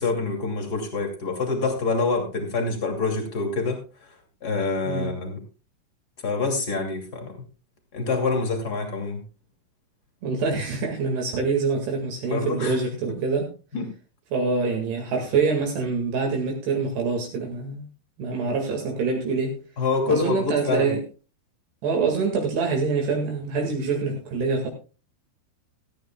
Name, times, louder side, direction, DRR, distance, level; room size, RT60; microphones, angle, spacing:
voice 1, 0.0-4.1 4.4-5.4 6.2-7.4 7.9-9.2 12.3-12.8 13.7-13.9 19.8-20.9, left 3 dB, 30° left, 3 dB, 1.8 m, -26 dB
voice 2, 10.2-13.5 14.3-17.9 18.2-19.6 20.1-21.0 21.8-24.7, right 4 dB, 60° right, 2 dB, 3.8 m, -25 dB
16.5 x 14.0 x 2.3 m, 0.32 s
omnidirectional pair, 5.7 m